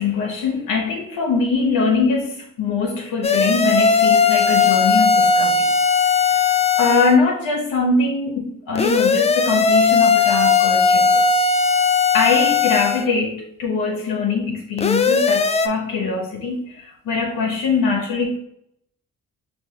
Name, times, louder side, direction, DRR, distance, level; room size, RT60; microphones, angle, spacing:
voice 1, 0.0-5.7 6.3-6.4 6.8-11.2 12.1-18.4, left 4 dB, 70° left, 0 dB, 0.7 m, -22 dB
sound 1, 3.2-7.2 8.8-13.1 14.8-15.7, left 5 dB, 20° left, 0.3 m, -17 dB
5.3 x 2.3 x 2.8 m, 0.73 s
hypercardioid pair, 40°, 37 cm